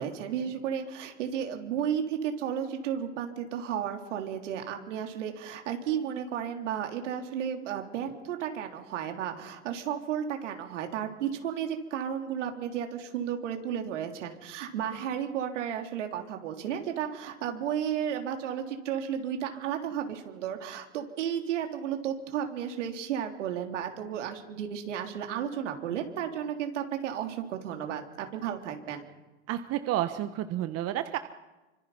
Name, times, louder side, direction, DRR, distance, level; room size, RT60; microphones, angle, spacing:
voice 1, 0.0-29.0, right 9 dB, 75° right, 4 dB, 3.5 m, -33 dB
voice 2, 29.5-31.2, right 13 dB, 40° right, 10 dB, 1.2 m, -30 dB
26.0 x 25.0 x 5.6 m, 1.1 s
hypercardioid pair, 105°, 37 cm